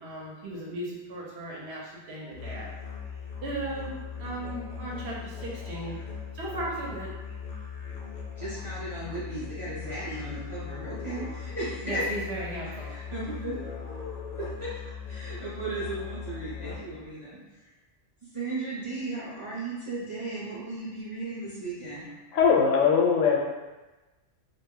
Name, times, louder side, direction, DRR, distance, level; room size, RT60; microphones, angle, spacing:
voice 1, 0.0-2.7 3.4-3.9 4.2-6.0 6.3-7.1 11.8-12.9, right 1 dB, 65° right, -4 dB, 0.9 m, -36 dB
Musical instrument, 2.3-17.1, left 6 dB, 55° left, 0.4 m, -39 dB
voice 2, 8.4-12.0 12.8-13.5 14.4-14.7 15.1-17.7 18.3-22.1, right 2 dB, 40° right, -9 dB, 0.5 m, -36 dB
voice 3, 22.3-23.5, left 6 dB, 85° left, -1 dB, 0.9 m, -21 dB
2.2 x 2.0 x 3.6 m, 1.1 s
omnidirectional pair, 1.2 m